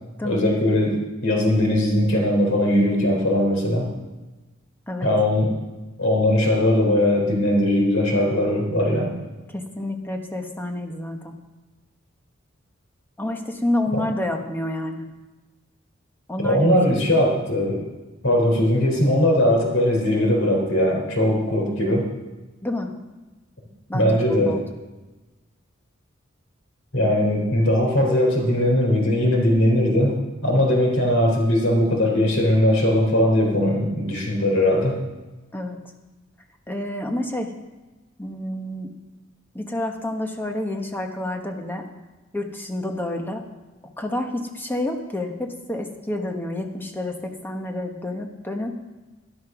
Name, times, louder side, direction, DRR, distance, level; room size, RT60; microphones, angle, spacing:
voice 1, 0.2-3.9 5.0-5.5 6.0-9.1 16.4-17.8 18.2-22.1 23.9-24.6 26.9-30.2 30.4-35.0, left 1 dB, 75° left, 0 dB, 3.8 m, -20 dB
voice 2, 9.5-11.3 13.2-15.0 16.3-16.6 22.6-22.9 23.9-24.6 35.5-35.8 36.7-37.5 38.2-38.9 39.5-41.9 42.3-43.4 44.0-48.8, left 1 dB, 10° left, 3 dB, 1.3 m, -29 dB
11.5 x 11.0 x 6.1 m, 1.2 s
head